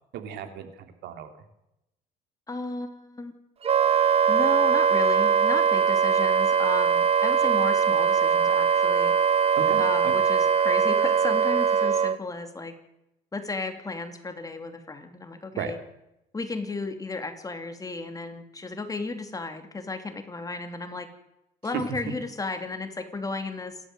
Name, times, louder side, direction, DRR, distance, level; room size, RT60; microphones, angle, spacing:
voice 1, 0.1-1.3 9.5-10.1 15.6-15.7 21.7-21.8, right 8 dB, 80° right, 7 dB, 3.2 m, -34 dB
voice 2, 2.5-3.3 4.3-9.1 9.8-12.7 13.3-15.8 16.3-21.1 21.6-23.8, left 3 dB, 20° left, 7 dB, 2.9 m, -34 dB
Wind instrument woodwind instrument, 3.6-12.2, right 7 dB, 35° right, 1.2 m, -21 dB
27.5 x 13.0 x 7.9 m, 0.85 s
cardioid pair, 110°, 17 cm